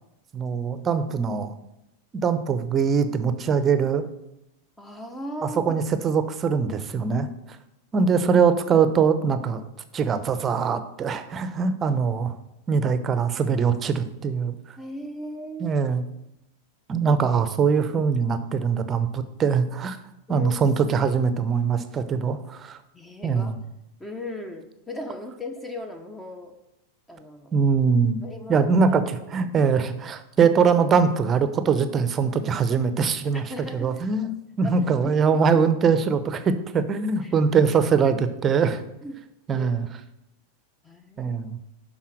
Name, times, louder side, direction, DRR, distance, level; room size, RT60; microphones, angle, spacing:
voice 1, 0.3-1.5 2.1-4.1 5.4-7.3 7.9-9.6 9.9-12.3 12.7-14.8 15.6-16.0 16.9-20.0 20.3-22.8 23.2-23.6 27.5-28.2 28.5-33.4 33.7-38.8 39.5-39.9 41.2-41.6, right 6 dB, 25° right, 11 dB, 0.8 m, -22 dB
voice 2, 4.8-5.8 14.8-15.8 20.3-20.8 22.9-23.6 24.0-26.6 27.1-27.5 28.2-28.7 33.3-34.1 34.6-35.1 35.5-35.6 37.2-37.3 39.0-39.2 39.6-39.7 40.8-41.4, left 1 dB, 10° left, 6 dB, 0.9 m, -37 dB
11.5 x 4.2 x 6.2 m, 0.86 s
figure-of-eight pair, 90°, 0 cm